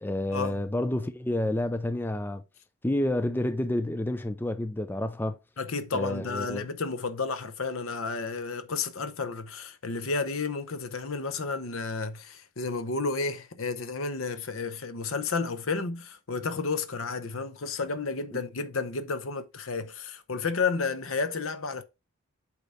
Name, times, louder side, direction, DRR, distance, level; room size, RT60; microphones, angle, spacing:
voice 1, 0.0-2.4 2.8-5.4 5.9-6.7, left 1 dB, 10° left, 0.4 m, -29 dB
voice 2, 5.6-21.8, left 4 dB, 70° left, 0.8 m, -31 dB
8.3 x 3.0 x 5.5 m
head